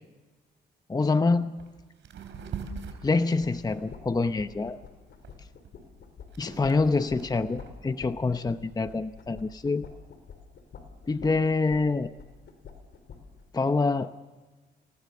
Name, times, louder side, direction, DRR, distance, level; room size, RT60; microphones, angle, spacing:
voice 1, 0.9-1.6 3.0-4.8 6.4-9.9 11.1-12.1 13.5-14.1, left 3 dB, 20° left, 10 dB, 0.8 m, -26 dB
sound 1, 1.1-1.2 1.5-1.7 2.0-4.7 5.2-7.8, right 5 dB, 65° right, 4.0 m, -42 dB
sound 2, 3.4-13.5, left 5 dB, 60° left, 4.0 m, -47 dB
28.5 x 18.5 x 6.8 m, 1.3 s
cardioid pair, 90°, 20 cm